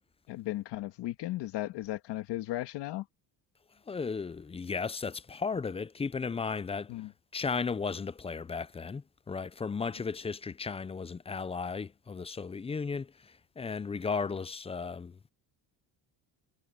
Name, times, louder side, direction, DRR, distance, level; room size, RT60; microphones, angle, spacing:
voice 1, 0.3-3.0 6.9-7.1, left 16 dB, 80° left, 1.7 m, -36 dB
voice 2, 3.9-6.9 7.3-15.2, left 5 dB, 15° left, 0.4 m, -35 dB
cardioid pair, 125°, 41 cm